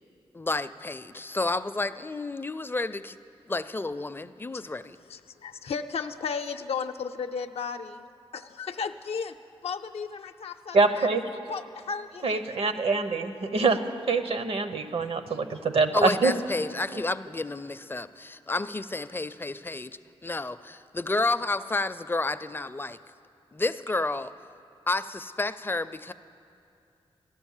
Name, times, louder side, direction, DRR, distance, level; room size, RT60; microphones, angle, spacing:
voice 1, 0.3-3.2 3.5-5.0 15.9-23.0 23.5-24.3 24.9-26.1, left 2 dB, 20° left, 13 dB, 0.4 m, -30 dB
voice 2, 5.1-9.4 9.6-11.1 11.5-12.6, left 5 dB, 75° left, 7 dB, 0.5 m, -35 dB
voice 3, 10.7-11.2 12.2-13.8 14.1-16.3, right 4 dB, 70° right, 9 dB, 0.9 m, -24 dB
14.5 x 11.0 x 7.2 m, 2.5 s
cardioid pair, 65°, 10 cm